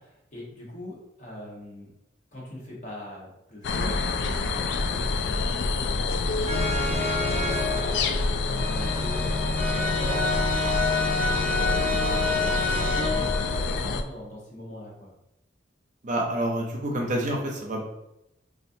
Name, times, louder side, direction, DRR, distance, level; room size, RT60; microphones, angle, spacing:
voice 1, 0.0-1.9 2.3-11.5 11.8-15.1, left 1 dB, 45° left, -4 dB, 1.2 m, -42 dB
sound 1, 3.6-14.0, left 3 dB, 70° left, 0.3 m, -27 dB
sound 2, 6.5-13.7, left 2 dB, 10° left, 1.2 m, -28 dB
voice 2, 16.0-17.8, right 1 dB, 45° right, 0 dB, 0.7 m, -28 dB
4.2 x 2.5 x 2.6 m, 0.86 s
head